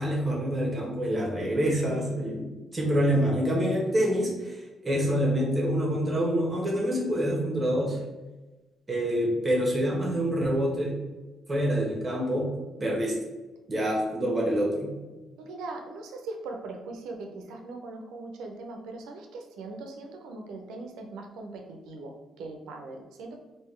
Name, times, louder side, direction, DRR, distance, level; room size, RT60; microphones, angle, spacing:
voice 1, 0.0-8.0 8.9-11.0 11.5-12.5 12.8-13.2 13.7-14.9, equal, 25° right, -2 dB, 1.0 m, -26 dB
voice 2, 15.4-23.4, right 3 dB, 85° right, 3 dB, 0.6 m, -40 dB
3.6 x 2.7 x 3.2 m, 1.2 s
cardioid pair, 90°, 0 cm